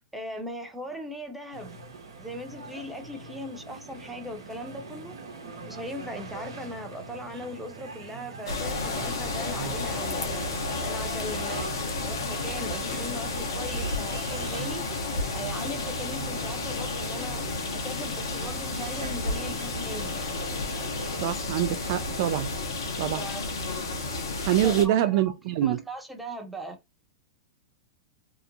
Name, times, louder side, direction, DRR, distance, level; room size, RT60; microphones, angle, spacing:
voice 1, 0.0-1.8 2.2-5.2 5.6-11.7 12.0-14.9 15.3-20.2 23.1-23.5 24.6-25.3 25.6-26.8, equal, 5° right, 0.7 m, -39 dB
sound 1, 1.5-21.3, right 3 dB, 80° right, 0.8 m, -43 dB
sound 2, 8.5-24.9, left 3 dB, 75° left, 0.8 m, -32 dB
voice 2, 21.2-22.5 23.0-23.2 24.4-25.8, right 12 dB, 55° right, 0.3 m, -25 dB
2.8 x 2.0 x 2.6 m
hypercardioid pair, 110°, 2 cm